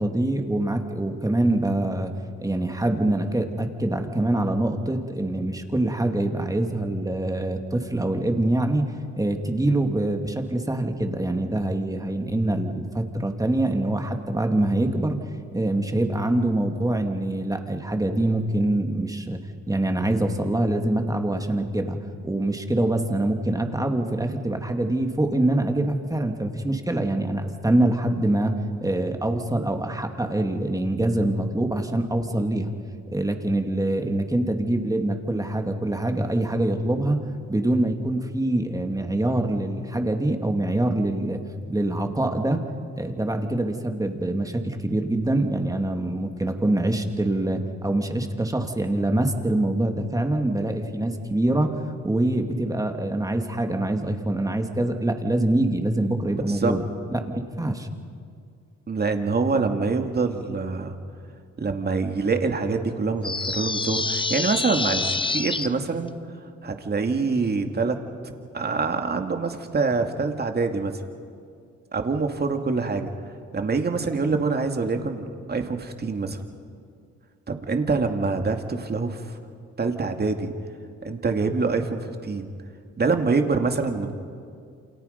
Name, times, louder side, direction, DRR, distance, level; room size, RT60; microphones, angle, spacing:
voice 1, 0.0-2.1 2.4-8.8 9.1-15.2 15.5-19.4 19.7-22.0 22.2-28.5 28.8-32.7 33.1-37.2 37.5-41.4 41.7-42.6 42.9-56.8 57.1-57.9, right 1 dB, 10° right, 4 dB, 2.4 m, -24 dB
voice 2, 56.3-56.7 58.9-61.0 61.6-66.1 66.6-68.0 68.2-71.0 71.9-73.1 73.5-76.4 77.5-79.4 79.8-80.5 81.0-82.5 83.0-84.1, right 4 dB, 35° right, 5 dB, 2.5 m, -25 dB
sound 1, 63.2-65.7, left 3 dB, 15° left, 0.9 m, -27 dB
29.0 x 27.5 x 5.4 m, 2.2 s
cardioid pair, 90°, 30 cm